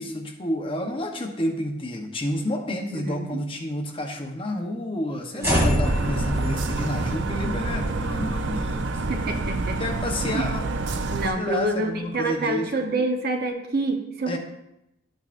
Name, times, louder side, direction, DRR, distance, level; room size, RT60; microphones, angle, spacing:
voice 1, 0.0-9.0 9.8-12.7 14.3-14.4, left 1 dB, 30° left, 2 dB, 0.9 m, -30 dB
voice 2, 2.7-3.4 5.3-5.8 9.1-9.8 10.3-10.5 11.1-14.4, right 2 dB, 50° right, 4 dB, 1.0 m, -27 dB
sound 1, 5.4-11.7, equal, 15° right, 2.8 m, -29 dB
sound 2, 5.8-11.3, right 3 dB, 65° right, 0.5 m, -28 dB
12.0 x 9.0 x 2.6 m, 0.83 s
head